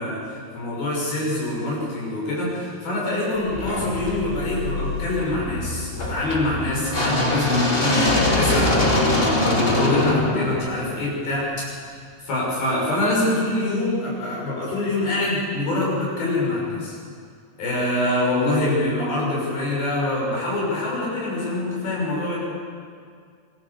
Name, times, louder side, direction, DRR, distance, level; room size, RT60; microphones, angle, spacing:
voice 1, 0.0-8.0 8.3-11.5 11.9-12.0 12.2-17.0 17.6-22.4, left 2 dB, 60° left, -4 dB, 8.2 m, -25 dB
sound 1, 3.5-11.6, left 2 dB, 20° left, 1.5 m, -23 dB
25.0 x 18.5 x 7.2 m, 2.1 s
omnidirectional pair, 4.7 m